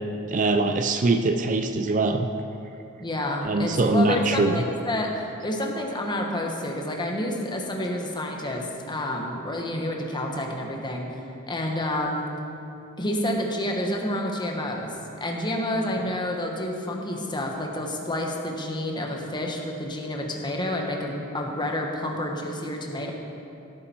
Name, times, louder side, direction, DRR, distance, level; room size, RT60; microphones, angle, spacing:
voice 1, 0.3-2.3 3.4-4.6, right 3 dB, 35° right, 7 dB, 0.5 m, -22 dB
voice 2, 3.0-12.3 13.0-14.9 15.2-23.1, left 1 dB, 20° left, 1 dB, 1.4 m, -29 dB
17.0 x 8.7 x 4.5 m, 2.8 s
head